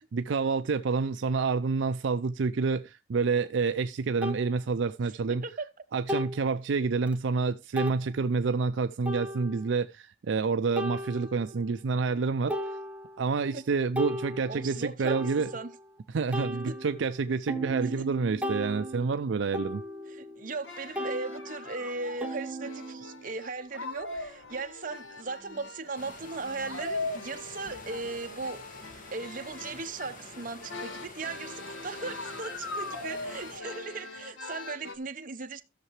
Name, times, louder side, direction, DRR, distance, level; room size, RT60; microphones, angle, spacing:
voice 1, 0.1-5.4 5.9-12.5 13.2-15.5 16.1-19.8, right 4 dB, 70° right, 0.4 m, -28 dB
sound 1, 3.4-3.5 4.2-4.4 6.1-6.5 7.1-7.2 7.8-8.0 9.1-9.7 10.8-11.6 12.1-12.2 12.5-13.3 13.7-15.9 16.3-20.7 21.0-23.3, equal, 5° right, 0.9 m, -36 dB
voice 2, 5.3-5.7 13.5-13.6 14.5-15.7 16.7-16.8 17.8-18.1 20.1-35.6, right 3 dB, 45° right, 0.9 m, -38 dB
sound 2, 20.6-35.0, left 2 dB, 75° left, 1.6 m, -41 dB
sound 3, 25.9-33.6, left 2 dB, 45° left, 1.5 m, -48 dB
14.0 x 6.7 x 3.2 m
head